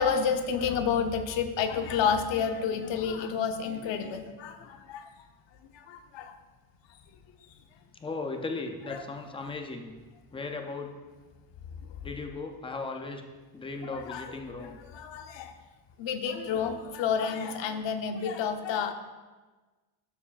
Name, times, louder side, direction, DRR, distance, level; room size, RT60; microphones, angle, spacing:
voice 1, 0.0-5.1 5.7-6.4 8.9-9.0 13.9-15.5 16.0-18.9, left 6 dB, 65° left, 7 dB, 0.8 m, -30 dB
voice 2, 8.0-9.9 10.3-11.0 12.0-13.2 13.5-14.8, left 3 dB, 15° left, 4 dB, 0.3 m, -37 dB
12.5 x 6.8 x 2.4 m, 1.3 s
cardioid pair, 175°, 48 cm